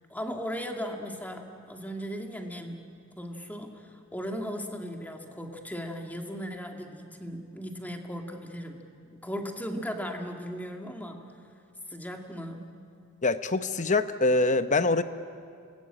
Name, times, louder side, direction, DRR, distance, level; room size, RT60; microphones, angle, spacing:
voice 1, 0.1-2.9 3.2-11.3 11.9-12.7, equal, 10° left, 3 dB, 2.0 m, -37 dB
voice 2, 13.2-15.0, left 2 dB, 35° left, 11 dB, 0.9 m, -24 dB
27.5 x 20.5 x 8.8 m, 2.3 s
head